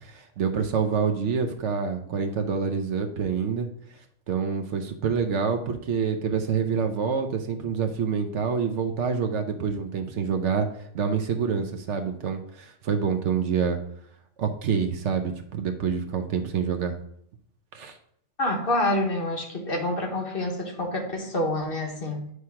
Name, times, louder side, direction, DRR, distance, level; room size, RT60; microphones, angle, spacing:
voice 1, 0.0-3.7 4.3-10.7 10.9-13.8 14.4-17.0 17.7-18.0, right 6 dB, 65° right, 5 dB, 1.0 m, -27 dB
voice 2, 18.4-22.3, left 1 dB, 45° left, 1 dB, 1.3 m, -27 dB
9.2 x 3.2 x 5.7 m, 0.70 s
omnidirectional pair, 1.4 m